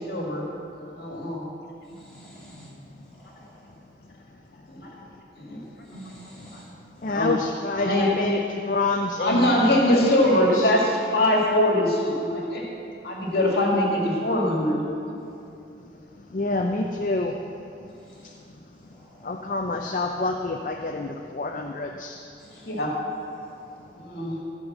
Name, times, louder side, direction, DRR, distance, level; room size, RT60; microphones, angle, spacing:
voice 1, 0.1-0.4 0.8-1.4 4.7-4.9 5.4-5.6 7.0-7.3 7.8-8.1 9.2-12.7 13.0-15.1 22.7-22.9 24.0-24.4, left 1 dB, 60° left, -2 dB, 2.0 m, -22 dB
voice 2, 1.8-2.8 3.0-3.8 5.4-6.7 7.0-7.3 13.1-13.3 15.2-15.5 17.9-18.4 18.8-19.4 22.4-22.8 23.3-24.1, right 1 dB, 5° left, -9 dB, 2.8 m, -50 dB
voice 3, 7.0-10.7 16.3-17.3 19.2-22.2, left 2 dB, 45° left, 3 dB, 0.5 m, -27 dB
14.0 x 5.2 x 7.3 m, 2.6 s
head